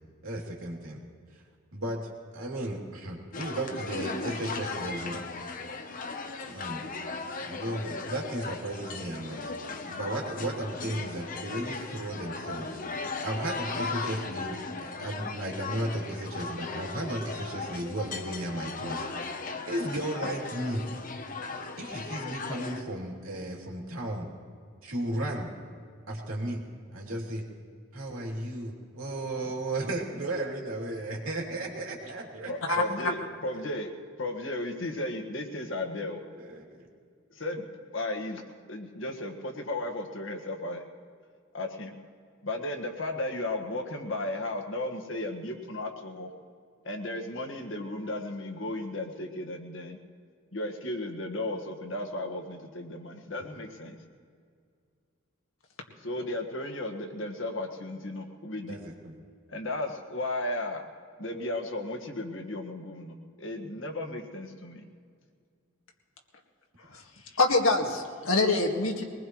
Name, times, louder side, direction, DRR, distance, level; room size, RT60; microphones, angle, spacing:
voice 1, 0.2-1.0 1.7-2.0 2.3-5.2 6.5-6.8 7.5-9.4 9.9-12.8 13.2-19.1 19.7-20.8 21.8-24.3 24.8-25.5 26.1-26.6 26.9-27.4 27.9-33.0 36.4-36.8 58.7-59.1, right 1 dB, 85° right, -1 dB, 2.9 m, -34 dB
sound 1, 3.3-22.8, left 4 dB, 40° left, 0.9 m, -37 dB
voice 2, 32.5-33.2 33.4-33.9 34.2-36.2 37.3-37.6 37.9-38.4 38.7-40.8 41.5-41.9 42.4-46.3 46.8-50.0 50.5-54.0 56.0-58.8 59.5-60.8 61.2-64.8, left 1 dB, 65° left, 3 dB, 1.6 m, -34 dB
voice 3, 66.8-69.0, left 3 dB, 85° left, 2 dB, 1.9 m, -26 dB
22.0 x 20.0 x 3.1 m, 2.2 s
head